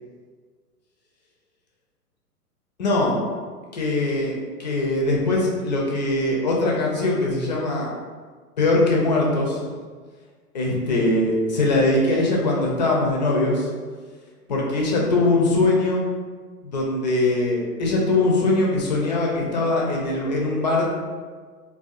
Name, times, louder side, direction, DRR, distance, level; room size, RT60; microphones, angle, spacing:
voice 1, 2.8-3.2 3.7-4.3 4.6-7.9 8.6-9.6 10.5-13.7 14.5-16.0 16.6-20.9, left 2 dB, 30° left, -2 dB, 0.4 m, -21 dB
3.6 x 2.3 x 2.3 m, 1.5 s
figure-of-eight pair, 115°, 47 cm